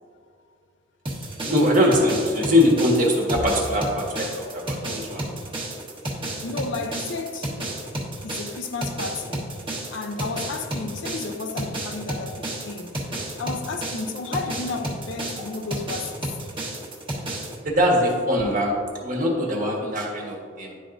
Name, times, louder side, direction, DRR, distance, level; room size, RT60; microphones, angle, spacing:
sound 1, 1.1-17.6, right 1 dB, 30° right, 1.3 m, -32 dB
voice 1, 1.4-5.2 17.6-18.7 19.0-20.7, left 1 dB, 45° right, 1.4 m, -22 dB
voice 2, 6.4-7.5 8.2-9.5 9.9-12.9 13.4-16.2, left 4 dB, 70° left, 0.5 m, -32 dB
11.0 x 4.5 x 2.6 m
head